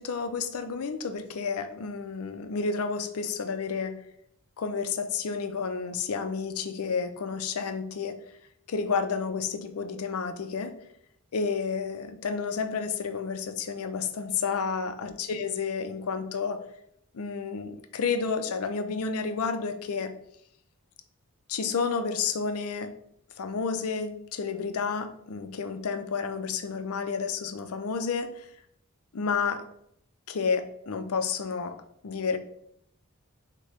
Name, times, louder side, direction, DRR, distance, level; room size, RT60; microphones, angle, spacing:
voice 1, 0.0-3.9 4.6-8.2 8.7-10.7 11.3-16.6 17.1-20.1 21.5-22.9 23.4-28.3 29.1-29.6 30.3-31.8 32.0-32.4, left 5 dB, 70° left, 9 dB, 0.5 m, -30 dB
6.3 x 2.2 x 3.4 m, 0.72 s
head